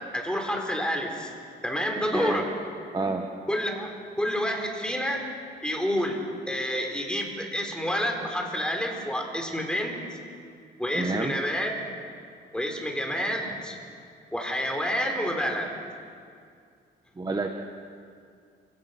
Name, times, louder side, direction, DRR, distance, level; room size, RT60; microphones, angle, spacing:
voice 1, 0.1-1.3 1.6-2.5 3.5-5.2 5.6-10.0 10.8-11.7 12.5-13.8 14.3-15.7, equal, 5° left, 1 dB, 4.9 m, -29 dB
voice 2, 2.1-2.4 2.9-3.3 10.9-11.4 17.2-17.5, right 3 dB, 20° right, 4 dB, 1.4 m, -28 dB
29.0 x 17.0 x 6.2 m, 2.3 s
cardioid pair, 90°, 20 cm